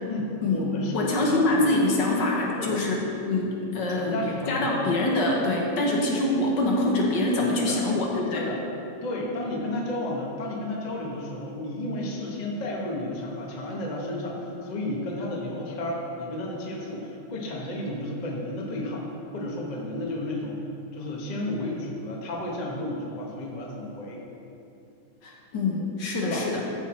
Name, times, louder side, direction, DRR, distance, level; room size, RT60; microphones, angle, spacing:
voice 1, 0.1-1.4 2.6-2.8 4.0-4.7 7.7-7.8 8.3-8.6 9.0-19.1 19.3-20.6 20.9-24.2 26.2-26.4, left 1 dB, 35° left, -2 dB, 0.7 m, -32 dB
voice 2, 0.9-4.2 4.5-8.4 25.2-26.6, left 2 dB, 60° left, -2 dB, 1.5 m, -25 dB
13.0 x 4.5 x 4.3 m, 2.8 s
omnidirectional pair, 2.4 m